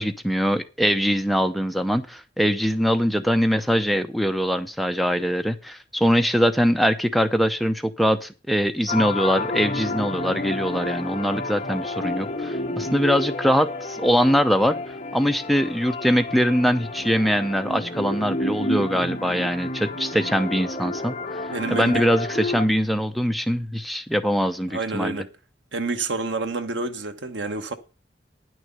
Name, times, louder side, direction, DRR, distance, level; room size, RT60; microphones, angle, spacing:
voice 1, 0.0-21.4 21.7-25.2, equal, ahead, 0.6 m, -22 dB
sound 1, 8.9-22.7, left 2 dB, 35° left, 1.2 m, -30 dB
voice 2, 21.5-22.0 24.7-25.3 25.7-27.8, right 3 dB, 80° right, 1.2 m, -28 dB
10.0 x 6.3 x 6.7 m
head